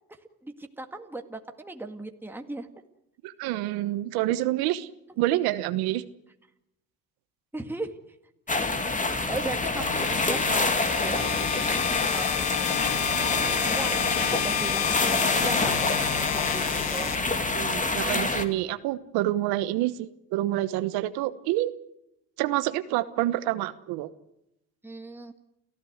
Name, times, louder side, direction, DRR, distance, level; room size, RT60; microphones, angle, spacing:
voice 1, 0.4-2.7 7.5-8.0 8.5-14.0 14.3-17.1 24.8-25.3, right 2 dB, 5° right, 5 dB, 1.9 m, -38 dB
voice 2, 3.2-4.9 5.2-6.0 17.5-21.7 22.4-24.1, right 15 dB, 85° right, 12 dB, 1.1 m, -27 dB
sound 1, 8.5-18.4, left 3 dB, 20° left, 2.5 m, -26 dB
sound 2, 9.8-17.8, left 15 dB, 80° left, 1.1 m, -31 dB
29.0 x 15.0 x 8.0 m, 0.86 s
supercardioid pair, 90°, 36 cm